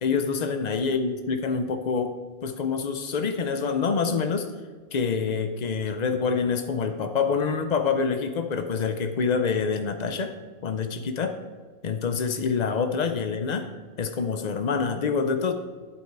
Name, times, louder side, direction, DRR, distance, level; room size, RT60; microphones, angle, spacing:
voice 1, 0.0-2.2 2.4-4.5 4.9-10.3 10.6-11.4 11.8-13.6 14.0-15.5, left 5 dB, 70° left, 7 dB, 0.4 m, -26 dB
11.0 x 8.0 x 4.7 m, 1.5 s
omnidirectional pair, 1.6 m